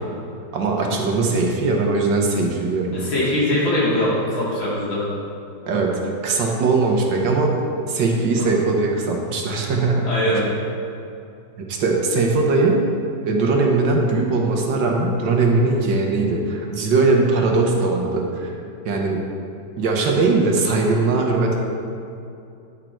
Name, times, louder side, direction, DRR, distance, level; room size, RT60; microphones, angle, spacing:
voice 1, 0.5-3.0 5.7-7.5 7.9-10.1 11.6-12.8 13.2-18.5 18.8-19.2 19.8-21.6, right 3 dB, 70° right, 0 dB, 1.6 m, -20 dB
voice 2, 2.9-5.1 10.1-10.4, left 1 dB, 75° left, -7 dB, 3.3 m, -21 dB
10.0 x 6.6 x 4.5 m, 2.6 s
omnidirectional pair, 2.1 m